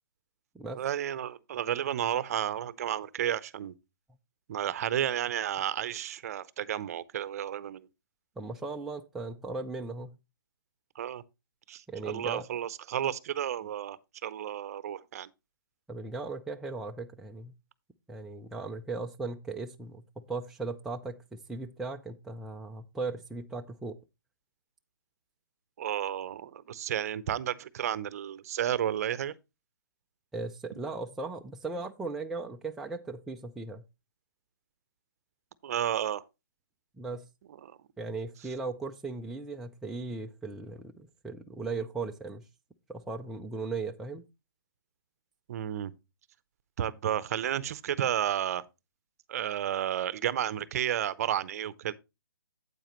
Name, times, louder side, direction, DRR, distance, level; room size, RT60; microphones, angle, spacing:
voice 1, 0.7-3.7 4.5-7.9 11.0-11.2 11.7-15.3 25.8-29.3 35.6-36.2 37.6-37.7 45.5-45.9 46.8-48.6 49.3-51.9, right 10 dB, 45° right, 0.7 m, -32 dB
voice 2, 8.4-10.1 11.9-12.5 15.9-17.5 18.1-24.0 30.3-33.8 37.0-37.3 38.0-42.4 42.9-44.2, right 3 dB, 5° right, 0.3 m, -37 dB
8.9 x 8.2 x 3.0 m
hypercardioid pair, 145°, 12 cm